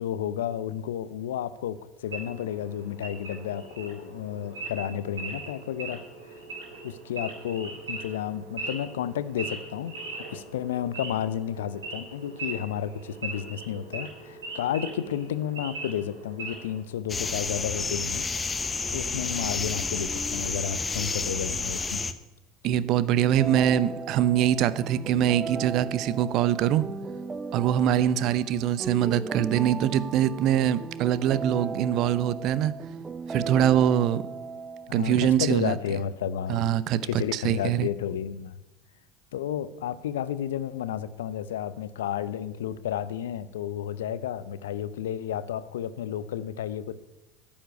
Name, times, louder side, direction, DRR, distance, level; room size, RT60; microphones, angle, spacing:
voice 1, 0.0-6.4 6.8-18.3 18.9-22.0 34.9-36.7 37.0-38.6 39.3-46.9, left 10 dB, 75° left, 15 dB, 0.6 m, -32 dB
Wild animals / Idling, 2.1-16.8, right 3 dB, 85° right, 4.3 m, -40 dB
sound 1, 17.1-22.1, left 4 dB, 20° left, 1.0 m, -30 dB
voice 2, 22.6-26.9 27.5-32.7 33.3-34.2 34.9-35.8 36.5-37.0 37.3-37.9, right 10 dB, 55° right, 16 dB, 0.7 m, -23 dB
sound 2, 23.4-35.0, right 4 dB, 20° right, 0.7 m, -36 dB
10.0 x 7.2 x 9.4 m, 1.0 s
hypercardioid pair, 75°, 0 cm